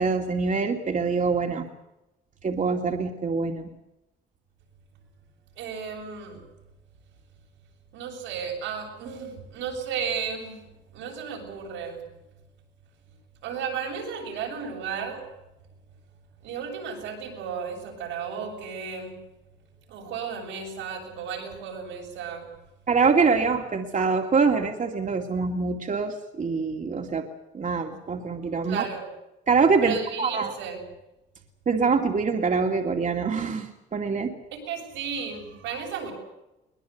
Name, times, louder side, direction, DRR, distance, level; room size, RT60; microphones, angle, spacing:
voice 1, 0.0-1.7 2.4-3.7 22.9-27.3 27.5-28.9 29.5-30.5 31.7-34.3, right 4 dB, 40° right, 2 dB, 2.5 m, -24 dB
voice 2, 5.6-6.4 7.9-10.6 10.9-12.0 13.4-15.2 16.4-19.2 19.9-22.5 28.7-29.0 29.8-30.8 34.5-36.1, right 6 dB, 90° right, 1 dB, 7.6 m, -34 dB
22.5 x 20.0 x 8.2 m, 0.95 s
supercardioid pair, 75°, 19 cm